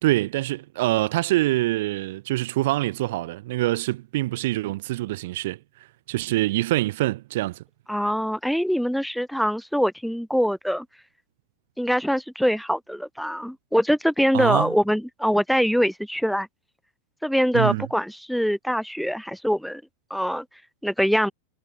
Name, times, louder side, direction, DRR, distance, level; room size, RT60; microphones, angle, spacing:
voice 1, 0.0-5.6 6.1-7.6 14.3-14.7 17.5-17.9, right 17 dB, 55° right, 2.1 m, -25 dB
voice 2, 7.9-10.9 11.8-16.5 17.2-19.8 20.1-20.4 20.8-21.3, equal, ahead, 0.6 m, -23 dB
figure-of-eight pair, 90°, 0 cm